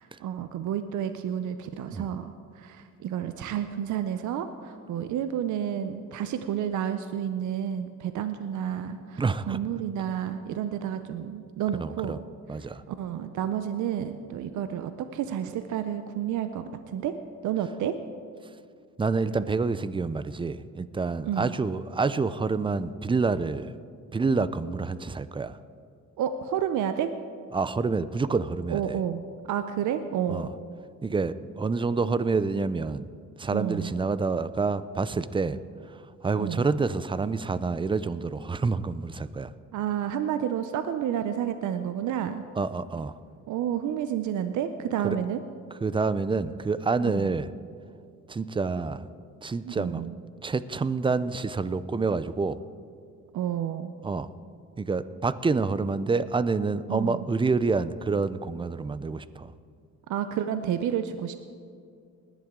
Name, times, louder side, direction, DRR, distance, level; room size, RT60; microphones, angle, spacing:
voice 1, 0.0-12.2 12.9-17.1 17.4-17.9 21.2-21.5 26.2-27.1 28.7-29.2 29.5-30.5 33.5-33.9 36.4-36.7 39.7-42.4 43.5-45.4 47.0-47.3 49.7-50.2 53.3-54.0 56.9-57.2 60.1-61.4, right 9 dB, 75° right, 9 dB, 0.7 m, -30 dB
voice 2, 9.2-9.6 11.8-12.2 12.5-12.8 19.0-23.7 24.1-25.6 27.5-29.0 30.3-30.5 31.0-33.1 33.4-35.6 35.9-39.5 42.6-43.2 45.0-45.2 45.8-47.5 48.3-49.1 49.4-50.0 50.4-52.6 54.0-54.3 54.8-59.5, right 4 dB, 15° right, 15 dB, 0.5 m, -28 dB
20.0 x 11.0 x 3.7 m, 2.3 s
cardioid pair, 90°, 30 cm